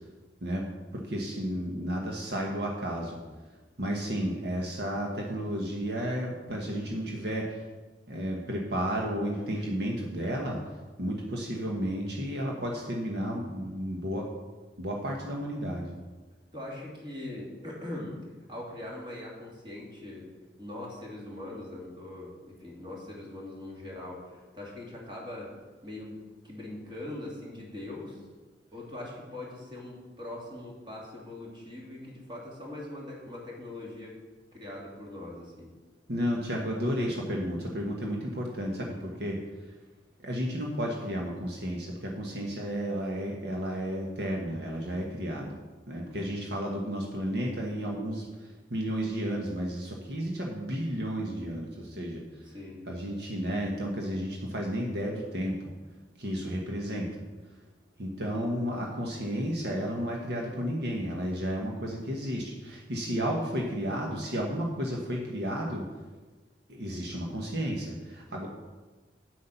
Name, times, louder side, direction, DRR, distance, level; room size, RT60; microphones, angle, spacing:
voice 1, 0.9-3.2 3.8-7.6 8.1-10.6 11.0-14.3 14.8-15.9 36.1-39.4 40.2-45.6 45.9-52.2 52.9-55.6 56.2-57.1 58.0-65.8 66.7-68.5, equal, 65° right, -1 dB, 1.3 m, -32 dB
voice 2, 16.5-18.2 18.5-20.2 20.6-25.5 25.8-26.2 26.4-28.2 28.7-34.1 34.5-35.7 46.2-46.4 52.4-52.8, left 1 dB, 25° right, -3 dB, 2.6 m, -41 dB
8.5 x 8.1 x 5.7 m, 1.3 s
head